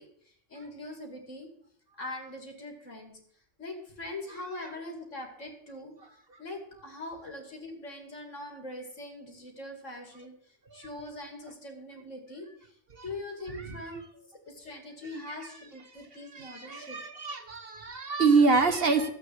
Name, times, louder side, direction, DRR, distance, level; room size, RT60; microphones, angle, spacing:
voice 1, 0.0-1.5 2.0-3.2 3.6-5.9 6.4-12.7 13.0-14.0 14.5-17.0, left 2 dB, 80° left, 3 dB, 3.2 m, -42 dB
voice 2, 16.7-19.1, right 4 dB, 50° right, 7 dB, 1.5 m, -25 dB
12.5 x 8.3 x 8.0 m, 0.64 s
omnidirectional pair, 1.3 m